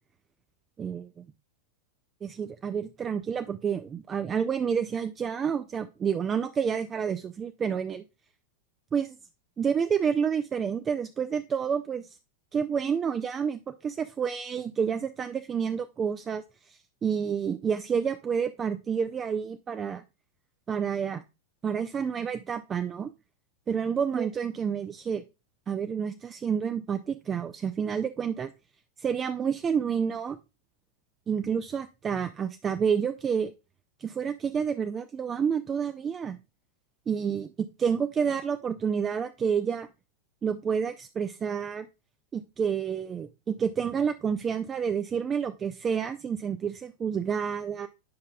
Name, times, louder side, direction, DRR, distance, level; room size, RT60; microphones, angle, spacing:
voice 1, 0.8-1.2 2.2-8.0 8.9-9.2 9.6-12.2 12.5-20.0 20.7-21.2 21.6-23.1 23.7-25.2 25.7-28.5 29.0-30.4 31.3-33.5 34.0-36.4 37.1-39.9 40.4-41.9 42.3-47.9, right 7 dB, 20° right, 9 dB, 0.3 m, -29 dB
9.4 x 5.2 x 2.3 m, 0.28 s
figure-of-eight pair, 90°, 0 cm